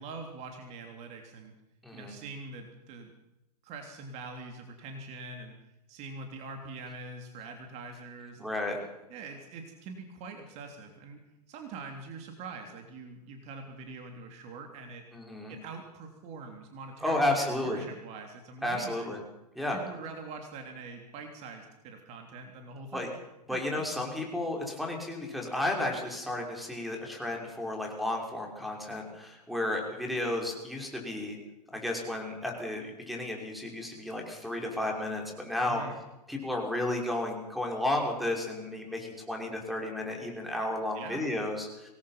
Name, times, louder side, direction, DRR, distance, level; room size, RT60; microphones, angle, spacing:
voice 1, 0.0-1.5 1.9-3.1 3.6-5.6 5.9-8.6 9.1-11.2 11.5-15.0 15.5-19.1 19.7-23.2 23.5-23.8 35.6-36.0 40.9-41.2, right 3 dB, 30° right, 4 dB, 3.4 m, -44 dB
voice 2, 1.8-2.2 8.4-8.8 15.1-15.5 17.0-17.8 18.6-19.2 19.6-19.8 22.9-23.1 23.5-31.4 31.7-35.8 36.3-41.9, left 1 dB, ahead, 1 dB, 5.6 m, -32 dB
26.0 x 20.0 x 6.0 m, 0.94 s
figure-of-eight pair, 105°, 21 cm